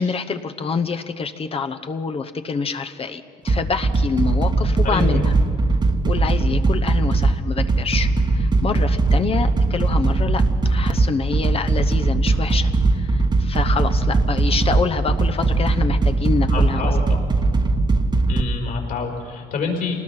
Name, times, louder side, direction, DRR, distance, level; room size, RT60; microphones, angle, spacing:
voice 1, 0.0-5.3 6.0-17.0, left 5 dB, 35° left, 8 dB, 0.9 m, -26 dB
sound 1, 3.5-18.4, right 3 dB, 25° right, 1.2 m, -19 dB
voice 2, 4.8-5.3 16.5-17.2 18.3-19.9, left 4 dB, 65° left, 0 dB, 5.1 m, -27 dB
26.5 x 19.5 x 5.9 m, 2.2 s
cardioid pair, 110°, 17 cm